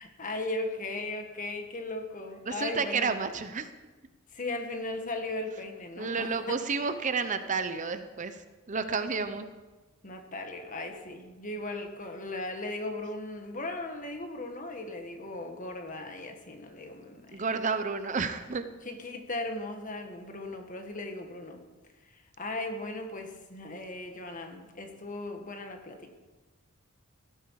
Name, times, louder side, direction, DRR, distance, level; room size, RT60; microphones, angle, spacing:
voice 1, 0.0-3.1 4.3-6.5 10.0-17.4 18.8-21.6 22.1-26.1, left 2 dB, 40° left, 5 dB, 1.6 m, -37 dB
voice 2, 2.5-3.7 6.0-9.5 17.3-18.6, right 5 dB, 35° right, 10 dB, 0.7 m, -31 dB
16.5 x 12.0 x 4.8 m, 1.2 s
head